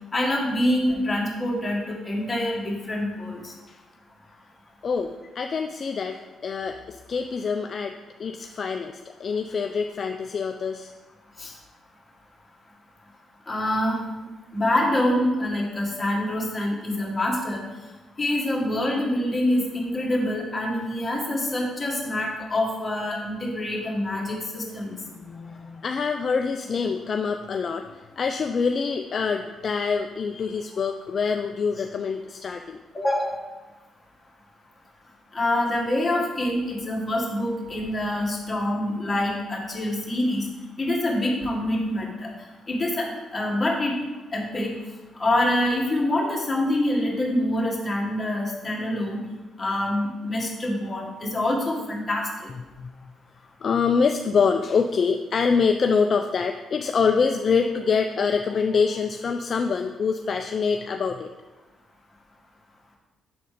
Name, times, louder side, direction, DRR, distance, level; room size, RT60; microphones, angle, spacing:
voice 1, 0.1-3.5 11.4-11.5 13.5-14.0 14.5-17.6 18.2-25.0 32.9-33.4 35.3-40.5 40.8-42.3 42.7-43.9 44.3-44.7 45.2-49.2 49.6-52.3, left 1 dB, 20° left, -3 dB, 1.8 m, -25 dB
voice 2, 4.8-10.9 25.0-32.8 52.8-52.9 53.6-61.3, left 5 dB, 45° left, 6 dB, 0.3 m, -25 dB
6.7 x 4.1 x 5.0 m, 1.2 s
cardioid pair, 90°, 0 cm